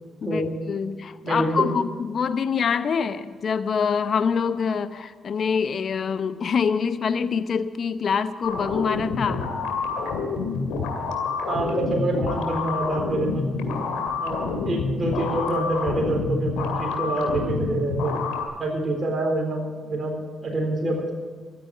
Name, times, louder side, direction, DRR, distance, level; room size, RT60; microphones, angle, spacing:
voice 1, 0.2-9.5, left 6 dB, 55° left, 12 dB, 0.7 m, -25 dB
voice 2, 1.2-1.7 11.5-13.5 14.2-18.1 18.6-21.1, right 2 dB, 40° right, 0 dB, 4.0 m, -26 dB
sound 1, 8.4-18.4, left 4 dB, 85° left, 2.3 m, -28 dB
13.5 x 8.7 x 9.6 m, 1.5 s
supercardioid pair, 65°, 0 cm